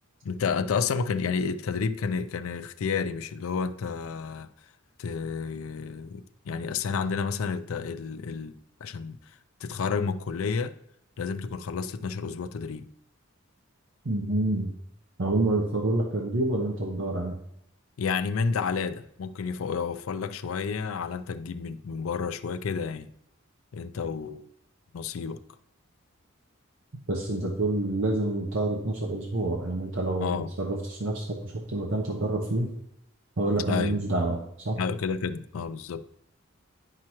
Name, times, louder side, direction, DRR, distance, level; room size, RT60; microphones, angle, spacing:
voice 1, 0.2-4.5 5.0-9.2 9.6-10.7 11.2-12.9 18.0-23.1 23.7-24.5 24.9-25.4 30.2-30.5 33.6-34.0 34.8-36.0, left 5 dB, 85° left, 0.4 m, -30 dB
voice 2, 14.0-14.7 15.2-17.3 27.1-32.7 33.4-34.4 34.6-34.8, right 2 dB, 65° right, 0.9 m, -27 dB
9.6 x 5.9 x 3.0 m
head